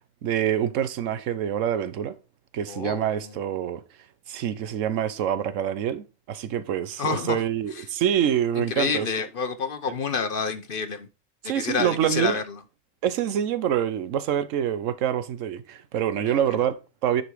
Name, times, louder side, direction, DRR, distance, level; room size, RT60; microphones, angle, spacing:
voice 1, 0.2-2.1 2.5-3.8 4.3-9.1 11.4-12.4 13.0-17.2, right 9 dB, 90° right, 1.1 m, -26 dB
voice 2, 2.7-3.3 7.0-7.4 7.7-7.8 8.6-11.1 11.4-12.4 16.2-16.6, left 5 dB, 50° left, 0.9 m, -29 dB
10.0 x 4.1 x 4.6 m
omnidirectional pair, 1.3 m